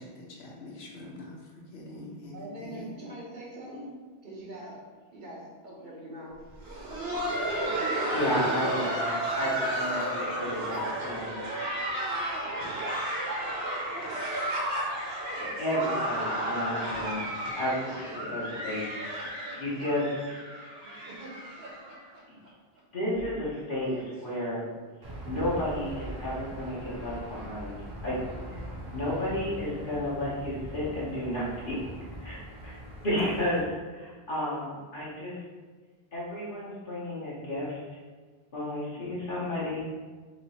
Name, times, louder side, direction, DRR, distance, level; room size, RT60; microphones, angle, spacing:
voice 1, 0.0-2.9, left 2 dB, 80° left, -2 dB, 1.1 m, -44 dB
voice 2, 2.3-3.9 4.2-4.8 5.1-6.3, right 1 dB, 50° right, -4 dB, 1.1 m, -42 dB
Laughter, 6.5-22.2 22.5-22.6 23.1-23.3 23.8-24.0 25.1-25.2, right 1 dB, 70° right, 1.1 m, -32 dB
voice 3, 8.0-11.3 15.4-17.2 17.6-19.2 19.5-20.4 22.3-22.4 22.9-24.6 25.3-27.8 28.0-28.2 28.9-31.9 32.2-32.8 33.0-33.6 33.9-35.3 36.1-37.8 38.5-39.8, left 1 dB, 55° left, -8 dB, 1.1 m, -32 dB
Aircraft / Engine, 25.0-33.6, right 1 dB, 30° right, 0.5 m, -41 dB
3.1 x 2.8 x 4.2 m, 1.4 s
omnidirectional pair, 1.1 m